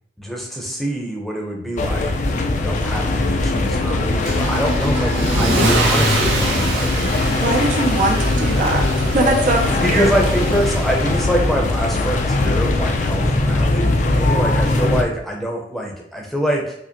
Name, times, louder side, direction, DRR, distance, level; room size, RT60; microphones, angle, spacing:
voice 1, 0.2-7.1 9.8-16.7, equal, ahead, -1 dB, 0.6 m, -25 dB
sound 1, 1.8-15.0, left 2 dB, 45° left, 0.4 m, -20 dB
Car / Engine starting / Accelerating revving vroom, 4.3-11.4, right 2 dB, 75° right, 0.8 m, -24 dB
voice 2, 7.3-8.9 9.1-10.4, right 2 dB, 45° right, 2 dB, 0.4 m, -21 dB
5.0 x 2.1 x 2.8 m, 0.73 s
head